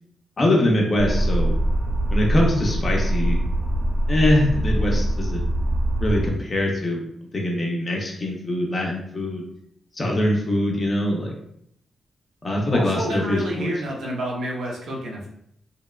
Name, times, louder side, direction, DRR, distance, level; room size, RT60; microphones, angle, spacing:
voice 1, 0.4-1.5 2.1-3.4 4.1-5.4 6.0-7.0 7.3-9.4 10.0-11.3 12.4-13.7, left 1 dB, 25° left, -1 dB, 0.5 m, -23 dB
sound 1, 1.0-6.3, right 1 dB, 35° right, 0.4 m, -23 dB
voice 2, 12.7-15.3, right 1 dB, 85° right, -2 dB, 0.6 m, -29 dB
2.8 x 2.1 x 2.2 m, 0.72 s
wide cardioid pair, 165°, 0 cm